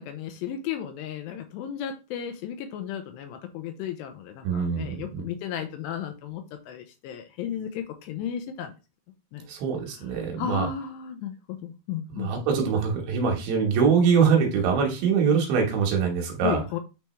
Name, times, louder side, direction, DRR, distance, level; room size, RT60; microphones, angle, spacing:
voice 1, 0.0-8.7 9.3-9.4 10.4-12.4 16.4-16.8, left 9 dB, 85° left, 6 dB, 2.6 m, -34 dB
voice 2, 4.4-5.2 9.5-10.7 12.1-16.6, right 6 dB, 75° right, 2 dB, 3.3 m, -23 dB
9.2 x 3.4 x 3.1 m, 0.30 s
omnidirectional pair, 5.4 m